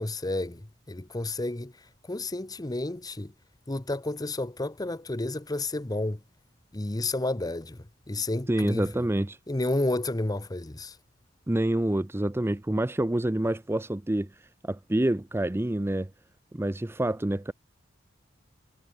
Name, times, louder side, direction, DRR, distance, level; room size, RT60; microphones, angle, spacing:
voice 1, 0.0-1.7 2.1-3.3 3.7-6.2 6.7-7.8 8.1-9.0 9.5-10.9, left 2 dB, 20° left, 0.9 m, -31 dB
voice 2, 8.5-9.4 11.5-14.3 14.6-16.1 16.5-17.5, right 1 dB, 10° right, 0.5 m, -27 dB
head